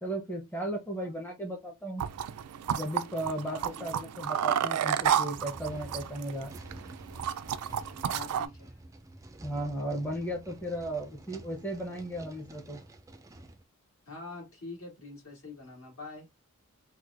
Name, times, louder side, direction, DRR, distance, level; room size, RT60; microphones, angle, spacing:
voice 1, 0.0-2.0 2.7-6.5 9.4-12.8, right 1 dB, 10° left, 0.7 m, -35 dB
sound 1, 2.0-8.5, right 9 dB, 85° right, 0.4 m, -31 dB
voice 2, 3.4-3.9 8.0-8.8 14.1-16.3, left 3 dB, 60° left, 2.1 m, -45 dB
sound 2, 5.3-13.6, right 1 dB, 15° right, 0.4 m, -49 dB
4.5 x 2.2 x 2.5 m
head